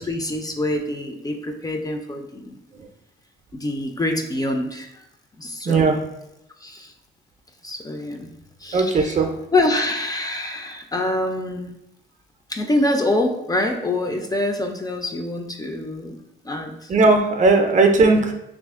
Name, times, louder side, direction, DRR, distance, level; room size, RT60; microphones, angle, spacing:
voice 1, 0.0-2.6 3.5-5.1 5.4-6.0 6.6-6.9 7.6-8.3 8.6-9.3 9.5-11.7 12.5-16.9 17.6-17.7, left 1 dB, 20° left, 4 dB, 0.4 m, -25 dB
voice 2, 5.7-6.0 8.7-9.3 16.9-18.3, right 3 dB, 40° right, 5 dB, 0.5 m, -17 dB
2.8 x 2.5 x 3.6 m, 0.84 s
cardioid pair, 90°, 20 cm